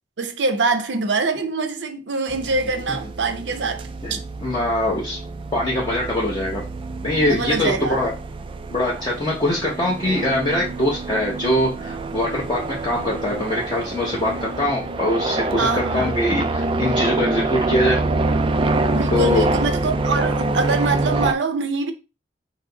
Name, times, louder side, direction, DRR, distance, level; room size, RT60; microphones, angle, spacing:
voice 1, 0.2-3.9 7.3-8.0 15.6-16.2 18.9-21.9, right 3 dB, 70° right, 0.7 m, -24 dB
sound 1, 2.3-21.3, right 2 dB, 30° right, 0.3 m, -26 dB
voice 2, 4.0-5.2 5.5-6.6 7.0-8.1 8.7-18.0 19.1-19.6, left 1 dB, 25° left, 0.8 m, -23 dB
4.8 x 2.1 x 3.8 m
head